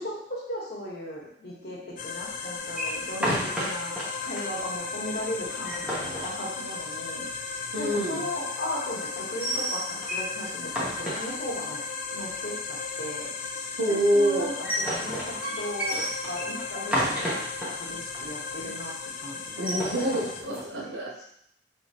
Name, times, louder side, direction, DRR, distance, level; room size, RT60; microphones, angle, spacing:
voice 1, 0.0-3.9 4.2-11.8 12.1-14.5 15.0-17.3 17.6-18.9 19.2-19.6 19.9-20.9, equal, 60° left, -4 dB, 1.3 m, -37 dB
sound 1, 2.0-20.4, left 5 dB, 45° left, 0.3 m, -36 dB
sound 2, 2.7-4.1 4.4-4.5 4.8-4.9 5.4-6.9 9.2-10.3 10.7-11.7 14.3-17.7 18.1-18.2 18.5-18.9 19.5-20.7, equal, 5° right, 0.9 m, -31 dB
voice 2, 7.7-8.3 13.8-14.5 19.6-21.2, right 1 dB, 75° right, -2 dB, 0.8 m, -26 dB
4.2 x 3.5 x 2.9 m, 0.71 s
head